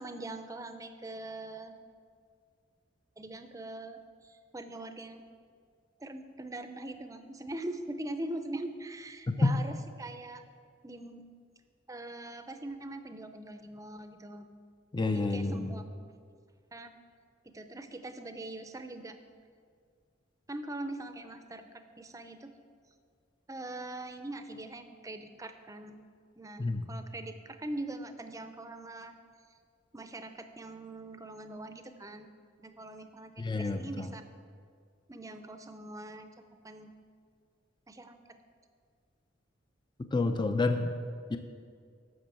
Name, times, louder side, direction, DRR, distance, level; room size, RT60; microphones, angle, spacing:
voice 1, 0.0-1.8 3.2-5.3 6.0-10.4 10.8-11.2 11.9-14.5 15.1-15.8 16.7-16.9 17.4-19.1 20.5-22.5 23.5-26.0 26.4-29.2 29.9-32.3 32.6-34.2 35.1-36.3 36.6-36.9 37.9-38.4, right 2 dB, 20° right, 8 dB, 0.6 m, -42 dB
voice 2, 14.9-15.8 26.6-26.8 33.4-34.1 40.1-40.9 41.3-41.4, left 3 dB, 25° left, 7 dB, 0.5 m, -29 dB
11.0 x 6.2 x 7.6 m, 2.1 s
head